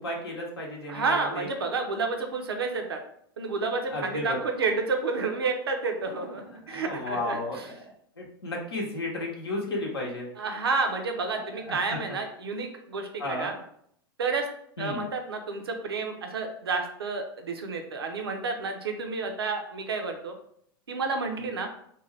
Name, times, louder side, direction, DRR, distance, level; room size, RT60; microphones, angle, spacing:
voice 1, 0.0-1.5 3.9-4.4 6.6-10.3 11.4-12.2 13.2-13.6 14.8-15.0 21.4-21.5, left 1 dB, 90° left, -2 dB, 0.7 m, -34 dB
voice 2, 0.9-3.0 3.4-7.7 10.4-13.5 14.2-14.5 14.8-20.3 20.9-21.7, right 4 dB, 85° right, 4 dB, 0.6 m, -30 dB
2.6 x 2.2 x 3.2 m, 0.67 s
hypercardioid pair, 95°, 13 cm